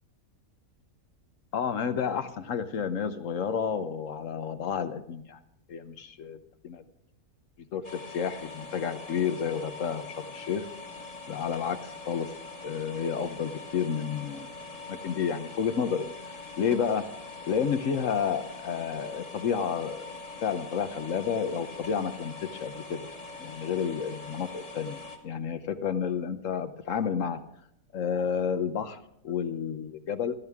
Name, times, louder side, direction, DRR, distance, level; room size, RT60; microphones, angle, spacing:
voice 1, 1.5-5.4 5.7-6.4 6.6-6.8 7.7-10.6 11.3-12.3 12.6-14.5 14.9-17.0 17.5-23.0 23.4-25.0 25.2-27.4 27.9-30.3, left 7 dB, 65° left, 10 dB, 1.1 m, -31 dB
sound 1, 7.8-25.2, left 3 dB, 25° left, 1.4 m, -43 dB
16.5 x 12.5 x 3.5 m, 0.73 s
omnidirectional pair, 1.6 m